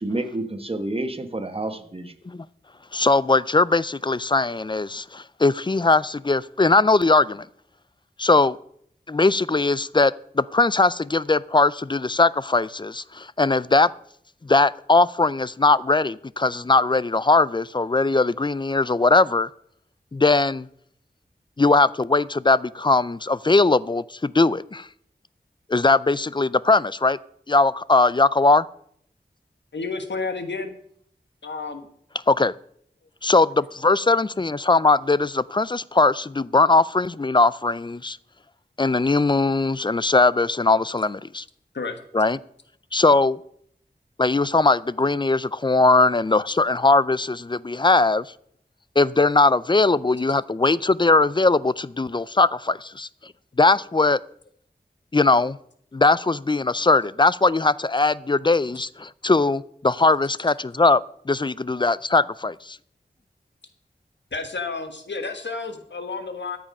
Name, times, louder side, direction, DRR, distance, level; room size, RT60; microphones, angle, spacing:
voice 1, 0.0-2.1, right 2 dB, 30° right, 7 dB, 1.2 m, -29 dB
voice 2, 2.9-7.5 8.2-8.6 9.1-13.9 14.4-19.5 20.1-20.7 21.6-24.9 25.7-27.2 27.5-28.7 32.3-32.5 33.2-38.2 38.8-41.4 42.1-42.4 42.9-43.4 44.2-48.3 49.0-53.1 53.6-54.2 55.1-55.6 55.9-61.0 61.3-62.8, left 3 dB, 25° left, 19 dB, 0.4 m, -20 dB
voice 3, 29.7-30.8 31.4-31.9 41.7-42.0 64.3-66.6, left 4 dB, 85° left, 7 dB, 1.3 m, -31 dB
13.5 x 7.6 x 5.4 m, 0.67 s
wide cardioid pair, 65°, 18 cm